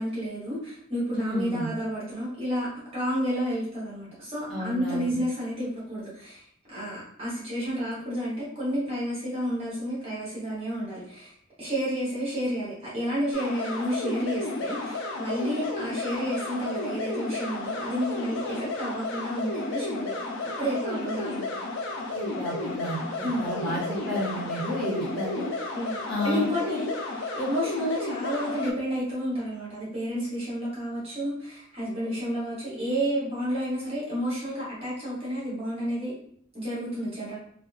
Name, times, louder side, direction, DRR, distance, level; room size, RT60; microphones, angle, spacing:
voice 1, 0.0-2.7 2.9-6.4 6.7-21.6 23.2-23.5 25.7-36.1 36.5-37.4, equal, 30° right, -8 dB, 1.0 m, -31 dB
voice 2, 1.1-1.7 4.5-5.1 22.1-25.5 26.1-26.4, equal, ahead, -11 dB, 1.1 m, -32 dB
sound 1, 13.3-28.7, left 3 dB, 60° left, 0.4 m, -33 dB
2.6 x 2.3 x 2.3 m, 0.64 s
head